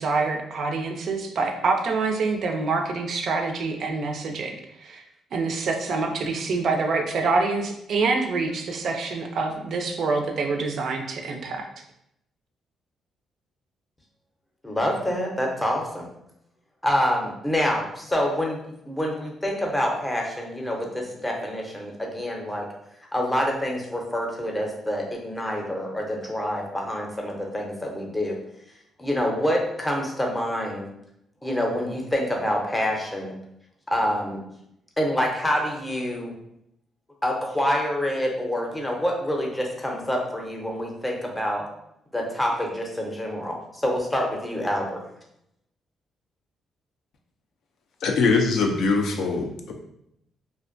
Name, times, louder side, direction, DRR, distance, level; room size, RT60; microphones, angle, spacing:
voice 1, 0.0-5.0 5.3-11.7, right 3 dB, 60° right, 4 dB, 0.4 m, -26 dB
voice 2, 14.6-16.1 16.8-18.6 18.9-22.7 23.1-28.4 29.0-30.9 31.4-33.3 33.9-34.4 35.0-36.3 37.2-41.7 42.1-45.0, equal, 10° left, 0 dB, 0.6 m, -26 dB
voice 3, 48.0-49.7, left 4 dB, 70° left, 3 dB, 0.3 m, -22 dB
2.4 x 2.1 x 2.5 m, 0.78 s
cardioid pair, 90°, 0 cm